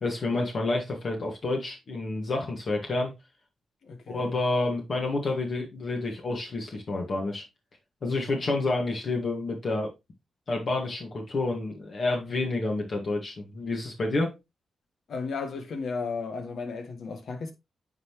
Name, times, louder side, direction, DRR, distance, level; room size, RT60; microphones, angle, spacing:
voice 1, 0.0-3.1 4.1-7.4 8.0-9.9 10.5-14.4, left 2 dB, 60° left, 1.9 m, -29 dB
voice 2, 3.8-4.3 8.4-8.6 15.1-17.5, left 4 dB, 75° left, 1.6 m, -34 dB
9.4 x 4.0 x 3.1 m
cardioid pair, 55°, 0 cm